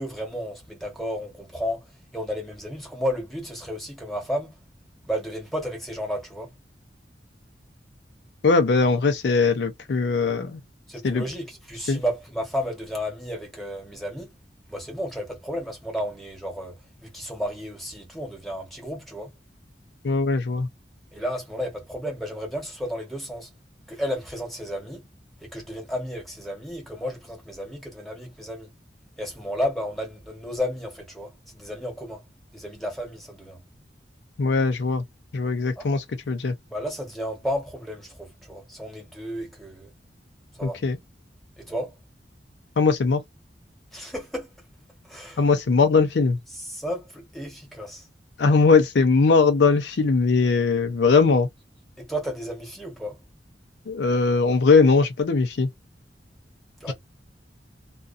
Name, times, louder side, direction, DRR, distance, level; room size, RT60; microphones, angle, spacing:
voice 1, 0.0-1.8 2.1-4.5 5.1-6.5 10.9-14.3 14.7-19.3 21.1-23.5 23.9-25.0 25.4-28.7 29.2-32.2 32.5-33.6 35.8-36.0 36.7-39.9 40.5-40.8 41.6-41.9 43.9-44.5 45.1-45.5 46.5-48.1 52.0-53.2 56.8-56.9, equal, ahead, 1.1 m, -32 dB
voice 2, 8.4-10.6 11.0-11.2 11.9-12.0 20.0-20.7 34.4-35.0 35.3-36.5 40.6-41.0 42.8-43.2 45.4-46.4 48.4-51.5 53.9-55.7 56.9-57.0, left 4 dB, 70° left, 0.5 m, -20 dB
2.3 x 2.2 x 2.5 m
head